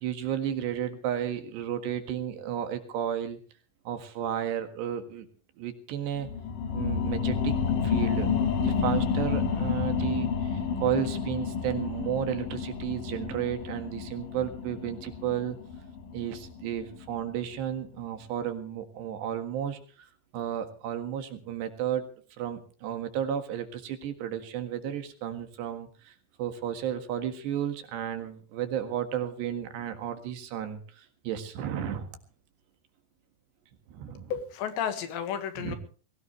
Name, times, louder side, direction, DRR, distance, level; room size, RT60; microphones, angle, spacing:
voice 1, 0.0-3.4 3.9-5.3 5.6-6.3 6.7-7.5 7.8-15.6 16.1-20.1 20.3-22.0 22.4-32.2 33.9-34.3 35.6-35.8, right 10 dB, 70° right, 7 dB, 3.8 m, -33 dB
sound 1, 6.2-17.3 17.7-17.8, left 6 dB, 55° left, 3.1 m, -30 dB
voice 2, 34.3-35.8, left 8 dB, 75° left, 9 dB, 3.9 m, -32 dB
21.5 x 17.0 x 3.2 m, 0.39 s
omnidirectional pair, 5.2 m